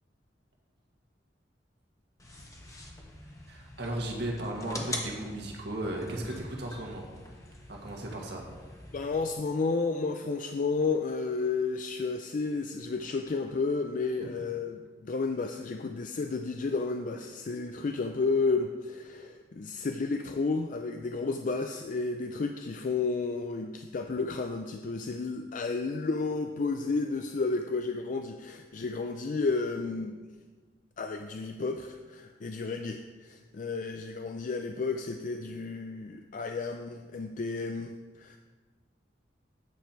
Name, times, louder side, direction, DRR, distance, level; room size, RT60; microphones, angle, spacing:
sound 1, 2.2-9.2, left 2 dB, 20° left, 1.2 m, -43 dB
voice 1, 3.5-7.0 7.7-8.4, right 1 dB, 65° right, -1 dB, 1.8 m, -35 dB
voice 2, 8.9-30.2 31.0-38.4, left 4 dB, 45° left, 6 dB, 0.4 m, -32 dB
9.1 x 7.2 x 4.5 m, 1.4 s
head